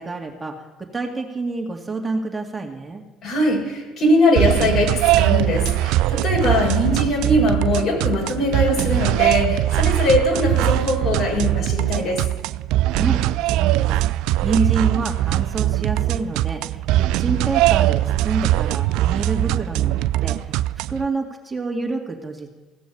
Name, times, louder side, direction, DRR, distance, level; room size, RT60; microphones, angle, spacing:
voice 1, 0.0-3.0 12.9-22.5, right 3 dB, 20° right, 1 dB, 2.2 m, -28 dB
voice 2, 3.2-12.2, left 1 dB, 60° left, -1 dB, 5.8 m, -21 dB
sound 1, 4.4-21.1, right 15 dB, 70° right, 0.3 m, -21 dB
16.5 x 6.1 x 8.6 m, 1.2 s
hypercardioid pair, 65°, 0 cm